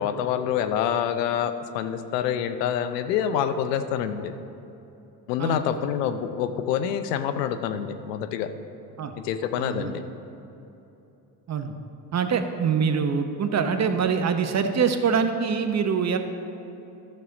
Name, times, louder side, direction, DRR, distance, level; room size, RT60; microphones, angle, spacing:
voice 1, 0.0-4.3 5.3-8.5 9.2-10.0, left 9 dB, 85° left, 10 dB, 0.7 m, -26 dB
voice 2, 5.4-5.9 9.0-9.1 9.6-9.9 11.5-11.7 12.1-16.2, right 6 dB, 35° right, 7 dB, 0.9 m, -24 dB
13.0 x 6.7 x 3.9 m, 3.0 s
hypercardioid pair, 65°, 47 cm